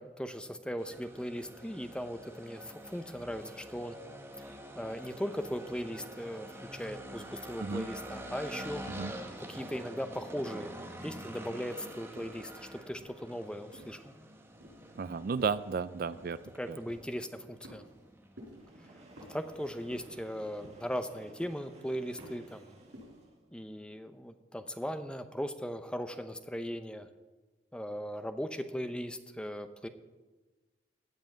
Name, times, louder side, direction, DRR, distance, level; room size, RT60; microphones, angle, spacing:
voice 1, 0.0-4.0 4.8-8.9 9.4-10.8 11.0-14.1 16.6-17.8 18.8-18.9 19.3-22.8 23.5-27.1 27.7-29.9, equal, 5° left, 9 dB, 0.7 m, -38 dB
sound 1, 0.8-20.7, right 1 dB, 15° right, 1.3 m, -47 dB
sound 2, 12.1-12.5 13.0-14.1 14.6-14.9 15.4-15.7 16.1-16.4 16.9-17.2 17.6-18.1 18.4-18.7 19.2-19.5 19.9-20.3 20.6-21.0 21.4-21.7 22.2-22.5 22.9-23.2, equal, 85° right, 5.6 m, -52 dB
voice 2, 15.0-16.4 16.7-16.8, right 5 dB, 50° right, 15 dB, 0.4 m, -33 dB
Train, 18.5-23.5, right 1 dB, 35° right, 1.8 m, -56 dB
16.0 x 5.5 x 9.2 m, 1.3 s
head